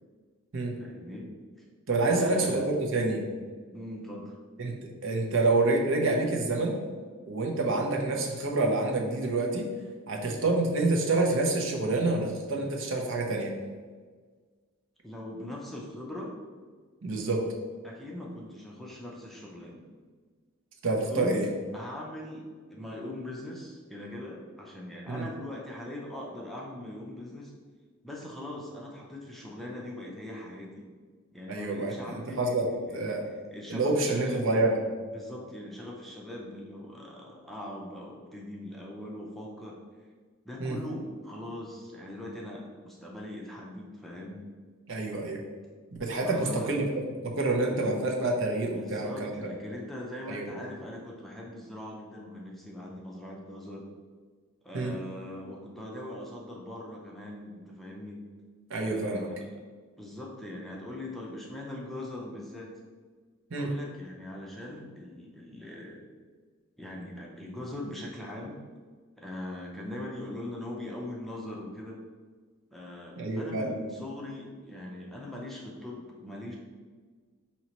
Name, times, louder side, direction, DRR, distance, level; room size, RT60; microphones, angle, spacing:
voice 1, 0.8-1.3 1.6-1.7 2.0-2.6 3.7-4.4 15.0-16.3 17.8-19.8 21.1-21.4 21.7-27.5 28.0-30.9 31.3-34.5 35.1-39.8 40.4-44.4 46.2-46.8 47.7-47.9 48.7-53.9 54.6-58.2 58.8-59.5 60.0-62.7 63.6-66.1 66.8-68.6 69.2-72.0 72.7-76.6, left 1 dB, ahead, -3 dB, 0.5 m, -41 dB
voice 2, 1.9-3.2 4.6-4.8 5.0-6.7 7.3-9.6 10.1-13.5 17.0-17.4 20.8-21.5 25.1-25.3 31.5-31.9 32.4-32.7 32.9-33.2 33.7-34.8 40.6-40.8 44.9-45.4 46.0-46.8 47.2-49.3 50.3-50.4 54.7-54.9 58.7-59.3 63.5-63.7 73.2-73.7, right 2 dB, 60° right, 1 dB, 0.7 m, -27 dB
5.4 x 2.9 x 2.9 m, 1.5 s
head